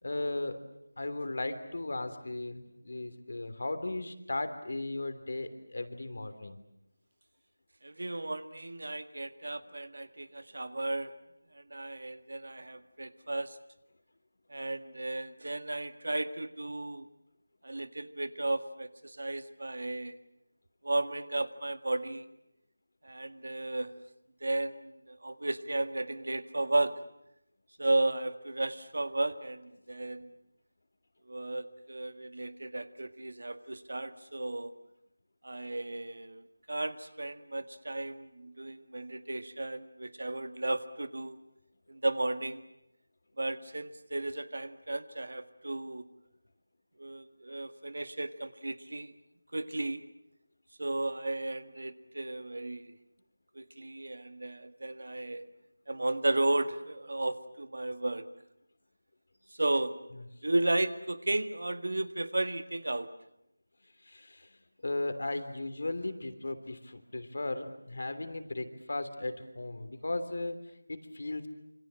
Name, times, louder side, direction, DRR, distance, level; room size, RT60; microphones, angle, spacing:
voice 1, 0.0-0.6 1.0-6.6 64.0-71.5, left 2 dB, 60° left, 9 dB, 3.2 m, -36 dB
voice 2, 7.8-11.1 11.5-13.6 14.5-17.1 17.6-20.2 20.8-22.3 23.0-23.9 24.4-27.0 27.8-30.3 31.3-34.7 35.4-41.4 41.9-42.6 43.4-46.0 47.0-49.1 49.5-50.0 50.8-53.0 53.6-55.5 55.9-58.3 59.5-60.0 60.4-63.1, right 2 dB, 70° right, 11 dB, 1.8 m, -34 dB
27.0 x 25.5 x 7.6 m, 0.82 s
figure-of-eight pair, 175°, 0 cm